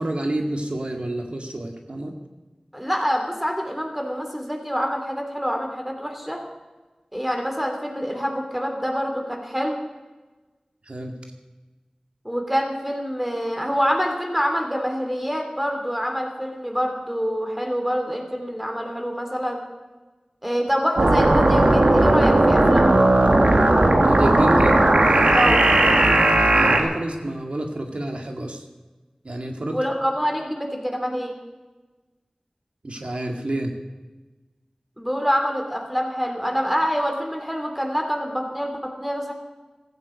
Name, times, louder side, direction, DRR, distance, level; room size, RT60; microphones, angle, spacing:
voice 1, 0.0-2.1 10.9-11.1 24.0-24.8 26.0-28.6 29.2-29.8 32.8-33.7, right 1 dB, 65° right, 3 dB, 2.1 m, -28 dB
voice 2, 2.7-6.4 7.1-9.8 12.2-19.6 20.4-22.9 25.3-25.7 29.7-31.4 35.0-39.3, equal, 5° right, 3 dB, 3.5 m, -26 dB
sound 1, 21.0-26.8, right 2 dB, 80° right, 2.2 m, -16 dB
15.5 x 15.0 x 5.3 m, 1.2 s
wide cardioid pair, 55°, 2 cm